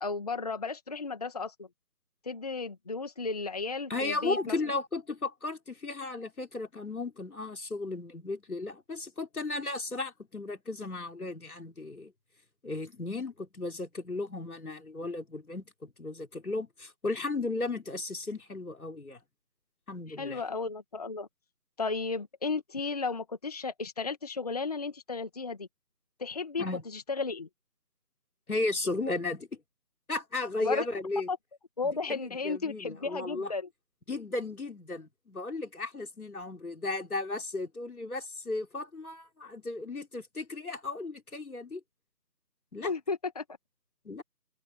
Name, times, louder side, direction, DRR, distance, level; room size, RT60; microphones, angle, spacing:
voice 1, 0.0-1.7 2.2-4.6 20.2-21.3 21.8-25.7 26.2-26.6 26.9-27.5 30.6-30.9 31.3-31.4 31.8-33.7 42.8-43.4, left 4 dB, 25° left, 2.1 m, -34 dB
voice 2, 3.9-12.1 12.6-19.2 19.9-20.4 26.6-26.8 28.5-29.6 30.1-31.3 31.8-33.5 34.1-41.8 42.7-42.9 44.0-44.2, left 3 dB, 60° left, 3.7 m, -35 dB
figure-of-eight pair, 165°, 50 cm